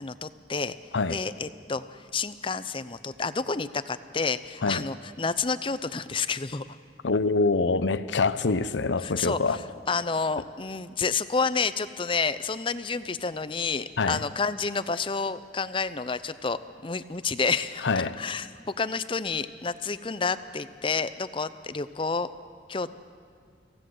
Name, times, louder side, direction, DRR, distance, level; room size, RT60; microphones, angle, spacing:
voice 1, 0.0-0.8 1.1-6.6 9.0-9.6 9.9-18.5 18.8-22.3 22.7-22.9, left 4 dB, 30° left, 14 dB, 0.6 m, -29 dB
voice 2, 7.0-9.6 14.0-14.2 17.8-18.2, left 3 dB, 85° left, 14 dB, 0.7 m, -25 dB
26.0 x 16.5 x 7.8 m, 2.2 s
head